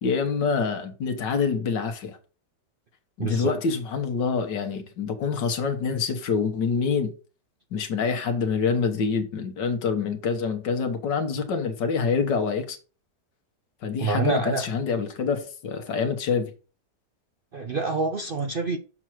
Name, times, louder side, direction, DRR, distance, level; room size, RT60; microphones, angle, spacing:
voice 1, 0.0-2.2 3.2-7.1 7.7-12.8 13.8-16.5, left 5 dB, 85° left, 1.9 m, -26 dB
voice 2, 3.2-3.5 14.0-14.7 17.5-18.8, right 4 dB, 75° right, 0.5 m, -27 dB
7.1 x 6.2 x 4.5 m
omnidirectional pair, 1.8 m